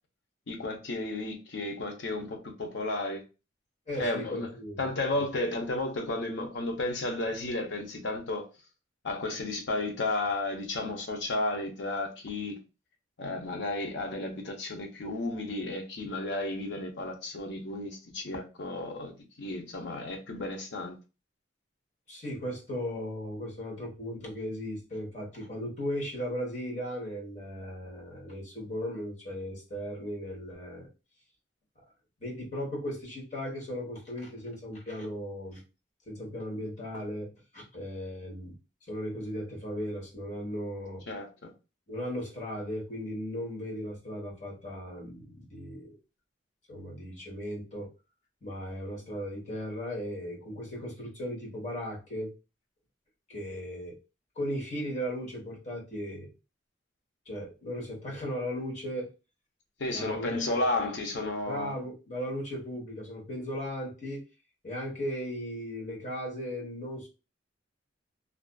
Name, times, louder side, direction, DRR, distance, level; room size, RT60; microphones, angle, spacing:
voice 1, 0.5-3.2 4.0-4.5 4.8-8.5 9.0-12.6 13.2-19.1 19.4-20.9 41.1-41.5 59.8-61.7, left 2 dB, 65° left, 0.7 m, -33 dB
voice 2, 3.9-4.9 5.1-5.2 22.1-30.9 32.2-35.6 36.1-37.3 37.5-38.5 38.9-41.0 41.9-46.0 46.7-47.9 48.4-52.3 53.3-54.0 54.4-56.3 57.3-59.1 59.9-60.7 61.4-64.2 64.6-67.1, equal, 40° left, 1.0 m, -37 dB
2.4 x 2.4 x 2.2 m
head